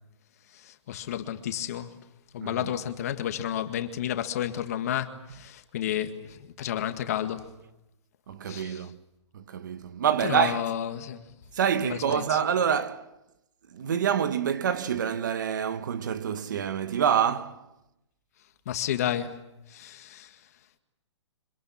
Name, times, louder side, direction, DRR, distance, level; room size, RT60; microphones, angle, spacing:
voice 1, 0.5-2.0 2.3-7.4 8.5-8.8 10.2-11.2 11.8-12.4 18.7-19.4 19.7-20.4, left 10 dB, 30° left, 1.9 m, -31 dB
voice 2, 2.4-2.7 8.3-9.0 9.3-10.7 11.5-13.1 13.7-17.7, right 8 dB, 40° right, 1.1 m, -27 dB
29.5 x 25.5 x 7.4 m
hypercardioid pair, 175°, 16 cm